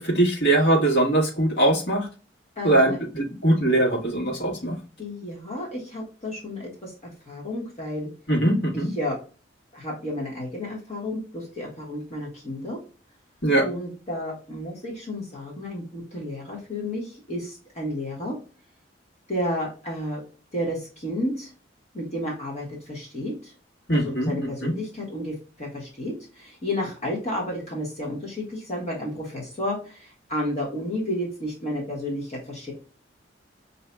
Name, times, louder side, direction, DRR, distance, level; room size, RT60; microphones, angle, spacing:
voice 1, 0.0-2.1 2.6-4.8 8.3-8.9 13.4-13.7 23.9-24.3 24.6-24.7, right 1 dB, 60° left, -1 dB, 1.6 m, -21 dB
voice 2, 2.6-3.0 5.0-8.1 8.9-9.2 9.7-12.8 13.6-18.4 19.3-20.2 20.5-21.5 21.9-23.5 23.9-32.7, left 1 dB, 35° left, -4 dB, 1.5 m, -31 dB
5.9 x 2.8 x 2.3 m, 0.35 s
head